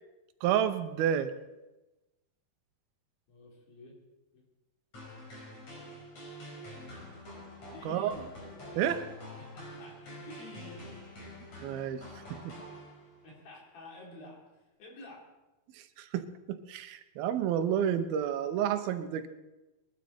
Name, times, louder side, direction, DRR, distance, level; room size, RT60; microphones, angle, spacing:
voice 1, 0.4-1.3 7.9-8.1 8.7-9.0 11.6-12.0 16.0-16.3 16.7-19.3, right 9 dB, 85° right, 10 dB, 2.8 m, -29 dB
voice 2, 3.3-4.0 4.3-4.4 5.2-5.6 7.7-8.3 9.4-10.9 13.2-15.2, left 2 dB, 75° left, -2 dB, 5.6 m, -50 dB
sound 1, 4.9-13.3, left 1 dB, 45° left, 5.9 m, -47 dB
21.5 x 12.5 x 4.4 m, 1.0 s
omnidirectional pair, 4.2 m